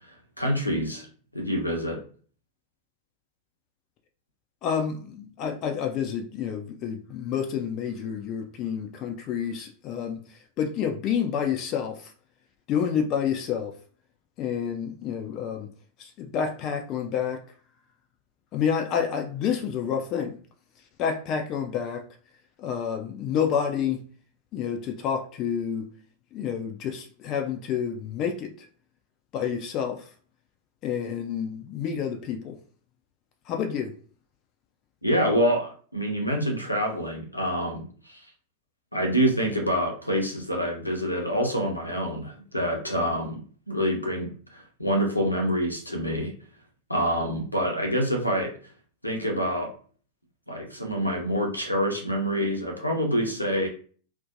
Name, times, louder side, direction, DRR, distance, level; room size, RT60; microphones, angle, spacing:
voice 1, 0.4-1.1 1.3-2.0 35.0-38.2 38.9-43.4 43.7-46.3 46.9-48.5 49.0-49.7 50.5-53.7, equal, 85° left, 0.6 m, -26 dB
voice 2, 4.6-12.1 12.7-13.8 14.4-15.7 16.0-17.4 18.5-20.4 21.0-22.0 22.6-24.0 24.5-25.9 26.3-28.7 29.3-30.1 30.8-32.6 33.5-33.9, left 7 dB, 35° left, 0.3 m, -29 dB
2.5 x 2.1 x 2.5 m
figure-of-eight pair, 90°, 0 cm